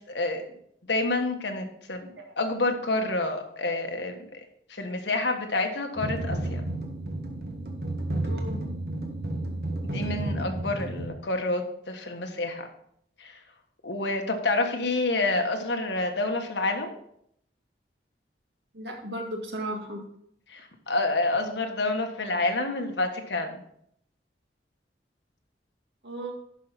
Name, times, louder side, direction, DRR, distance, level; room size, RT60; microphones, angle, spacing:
voice 1, 0.1-0.4 0.9-4.4 4.7-6.6 9.8-12.7 13.2-13.4 13.8-16.9 20.5-23.6, left 2 dB, 80° left, 4 dB, 1.4 m, -28 dB
sound 1, 6.0-11.1, right 1 dB, 60° right, 1.4 m, -31 dB
voice 2, 8.2-8.6 18.7-20.0 26.0-26.3, right 1 dB, 75° right, 1 dB, 1.9 m, -35 dB
11.5 x 5.7 x 4.1 m, 0.70 s
head